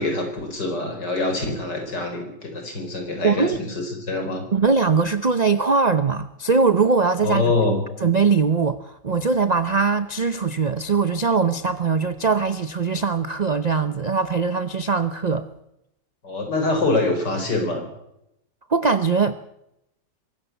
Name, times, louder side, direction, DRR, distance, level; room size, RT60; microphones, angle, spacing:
voice 1, 0.0-4.4 7.2-7.9 16.2-17.9, left 2 dB, 80° left, 5 dB, 5.2 m, -25 dB
voice 2, 3.2-3.6 4.5-7.5 8.0-15.5 18.7-19.4, right 5 dB, 45° right, 12 dB, 0.5 m, -21 dB
23.5 x 14.0 x 8.4 m, 0.83 s
omnidirectional pair, 1.8 m